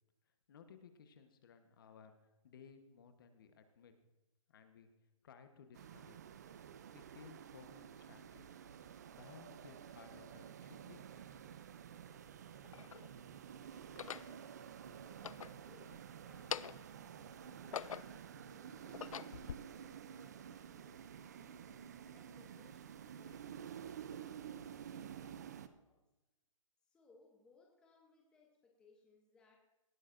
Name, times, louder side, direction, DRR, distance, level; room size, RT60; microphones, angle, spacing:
voice 1, 0.5-3.9 4.5-4.9 5.2-6.2 6.9-8.5 9.1-11.0, left 6 dB, 40° left, 8 dB, 1.1 m, -59 dB
sound 1, 5.7-25.7, right 8 dB, 30° right, 0.5 m, -51 dB
sound 2, 11.3-11.4 12.3-13.1 13.8-14.3 15.1-16.0 16.3-17.0 17.4-18.3 18.8-19.6, left 9 dB, 75° left, 0.4 m, -45 dB
voice 2, 14.9-15.3 15.6-26.0 26.8-29.6, left 4 dB, 5° left, 0 dB, 0.8 m, -68 dB
18.0 x 12.0 x 2.6 m, 0.99 s
hypercardioid pair, 165°, 17 cm